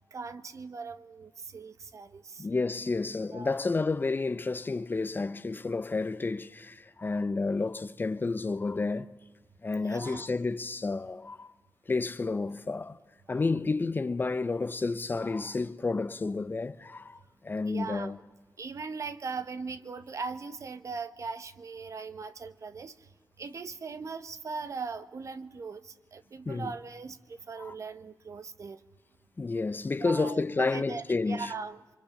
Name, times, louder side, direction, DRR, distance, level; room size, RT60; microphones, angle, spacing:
voice 1, 0.1-2.5 3.3-3.6 9.8-10.3 13.3-13.4 17.7-18.2 18.6-23.1 23.4-28.8 30.0-31.8, right 4 dB, 55° right, 1.2 m, -39 dB
voice 2, 2.4-9.1 9.6-11.5 11.9-13.0 13.3-18.2 26.5-26.7 27.6-27.7 29.4-31.5, left 3 dB, 30° left, 0.7 m, -30 dB
26.0 x 24.5 x 7.2 m
wide cardioid pair, 130°, 6 cm